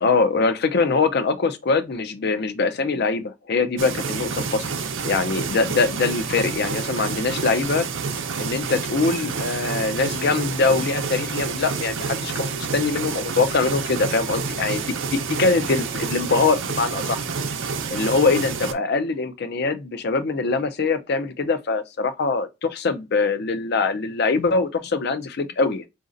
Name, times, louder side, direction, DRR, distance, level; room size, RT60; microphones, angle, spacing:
voice 1, 0.0-4.6 5.0-7.9 8.4-14.8 15.1-17.2 17.9-25.8, left 4 dB, 60° left, 0.5 m, -23 dB
sound 1, 3.8-18.7, right 5 dB, 85° right, 0.6 m, -28 dB
4.9 x 2.5 x 2.5 m
head